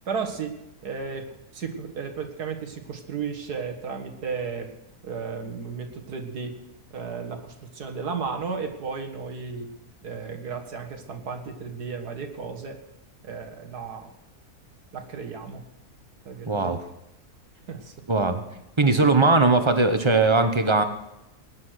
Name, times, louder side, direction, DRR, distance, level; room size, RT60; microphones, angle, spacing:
voice 1, 0.1-0.5 0.8-4.7 5.0-6.5 6.9-9.7 10.0-12.8 13.2-14.1 14.9-15.7 16.3-16.7 17.7-17.9, right 5 dB, 85° right, 5 dB, 2.2 m, -34 dB
voice 2, 16.5-16.8 18.1-18.4 18.8-20.8, right 3 dB, 20° right, 8 dB, 1.0 m, -19 dB
19.0 x 9.8 x 6.4 m, 0.89 s
omnidirectional pair, 1.6 m